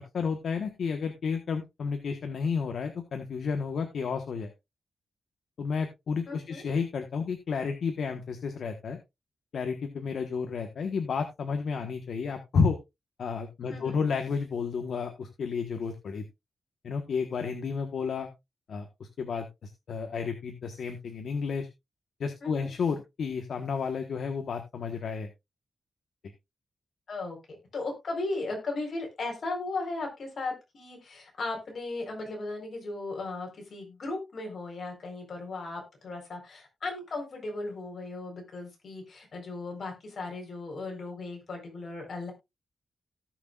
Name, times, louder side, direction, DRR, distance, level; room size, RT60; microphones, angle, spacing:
voice 1, 0.1-4.5 5.6-9.0 9.5-12.8 13.2-16.2 16.8-18.3 18.7-21.7 22.2-25.3, left 5 dB, 70° left, 6 dB, 1.3 m, -31 dB
voice 2, 6.3-6.6 13.7-14.0 22.4-22.7 27.1-27.4 27.7-42.3, left 3 dB, 55° left, 1 dB, 4.5 m, -36 dB
17.5 x 6.3 x 2.5 m, 0.22 s
wide cardioid pair, 115°, 0 cm